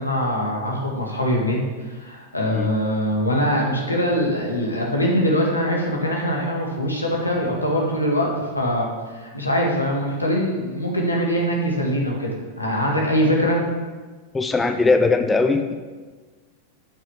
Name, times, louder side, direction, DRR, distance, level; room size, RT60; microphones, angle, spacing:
voice 1, 0.0-1.6 2.0-8.3 8.5-8.9 9.1-12.3 12.6-13.6, equal, 80° left, -1 dB, 2.0 m, -22 dB
voice 2, 14.3-15.7, left 3 dB, 10° left, 7 dB, 0.6 m, -19 dB
8.3 x 6.2 x 7.0 m, 1.4 s
figure-of-eight pair, 90°, 0 cm